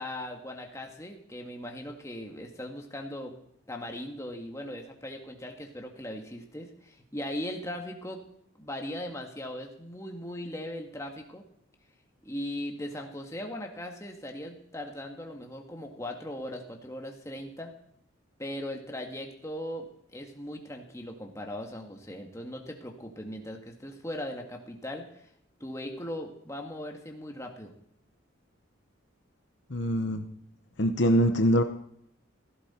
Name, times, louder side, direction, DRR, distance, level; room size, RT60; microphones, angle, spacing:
voice 1, 0.0-3.4 3.7-8.2 8.6-11.4 12.2-17.7 18.4-25.3 25.6-27.7, left 1 dB, 15° left, 2 dB, 1.8 m, -39 dB
voice 2, 29.7-30.2 30.8-31.6, equal, 55° left, 6 dB, 1.0 m, -23 dB
16.0 x 15.0 x 4.4 m, 0.72 s
head